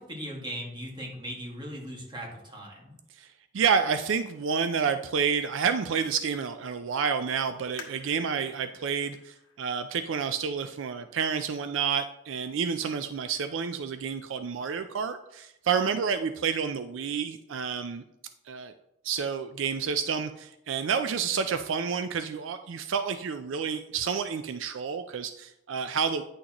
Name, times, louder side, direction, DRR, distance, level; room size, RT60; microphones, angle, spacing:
voice 1, 0.0-2.9, equal, 20° right, -1 dB, 1.8 m, -38 dB
voice 2, 3.5-18.0 18.5-18.7 19.0-26.2, right 6 dB, 70° right, 9 dB, 0.4 m, -29 dB
sound 1, 7.8-11.1 11.7-11.8 12.5-12.8 13.2-13.3, left 5 dB, 80° left, 1.3 m, -51 dB
9.5 x 6.3 x 3.0 m, 0.84 s
head